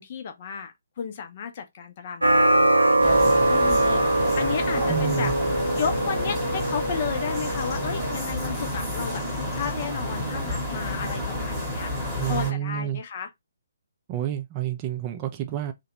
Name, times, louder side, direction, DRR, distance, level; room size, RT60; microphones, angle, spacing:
voice 1, 0.0-5.3 5.8-11.9 12.3-13.3, left 7 dB, 35° left, 0.5 m, -33 dB
sound 1, 2.2-8.2, right 1 dB, 80° right, 0.5 m, -22 dB
sound 2, 3.0-12.5, left 1 dB, 5° left, 1.0 m, -30 dB
voice 2, 4.9-5.3 12.2-13.0 14.1-15.7, right 12 dB, 25° right, 0.3 m, -29 dB
2.8 x 2.2 x 2.8 m
figure-of-eight pair, 135°, 0 cm